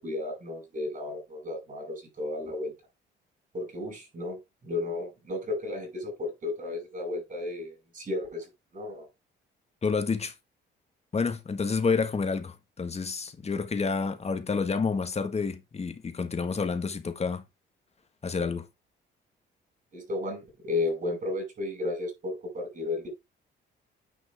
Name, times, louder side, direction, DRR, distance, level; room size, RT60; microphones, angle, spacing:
voice 1, 0.0-2.7 3.5-8.5 8.7-9.1 19.9-23.1, left 2 dB, 45° right, 6.3 m, -33 dB
voice 2, 9.8-10.3 11.1-17.4 18.2-18.7, left 5 dB, 35° left, 1.5 m, -29 dB
9.7 x 5.5 x 3.5 m
cardioid pair, 90°, 20 cm